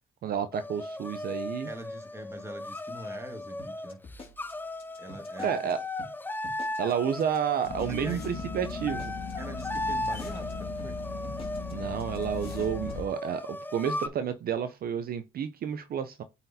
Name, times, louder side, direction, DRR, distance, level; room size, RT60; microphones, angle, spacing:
voice 1, 0.2-1.7 5.4-5.8 6.8-9.1 11.7-16.2, right 8 dB, 55° right, 0.5 m, -30 dB
sound 1, 0.5-14.1, left 1 dB, 10° left, 0.5 m, -37 dB
voice 2, 1.6-4.0 5.0-5.7 7.9-8.3 9.4-11.0, right 1 dB, 15° right, 1.5 m, -43 dB
sound 2, 3.6-5.7 6.0-6.1 6.4-6.9 7.2-7.4 7.6-10.5 10.8-10.9 11.2-11.7 12.0-12.2 12.4-13.0, left 3 dB, 30° left, 2.2 m, -47 dB
sound 3, 7.7-13.0, left 4 dB, 55° left, 1.1 m, -38 dB
8.8 x 4.1 x 2.7 m
supercardioid pair, 65°, 19 cm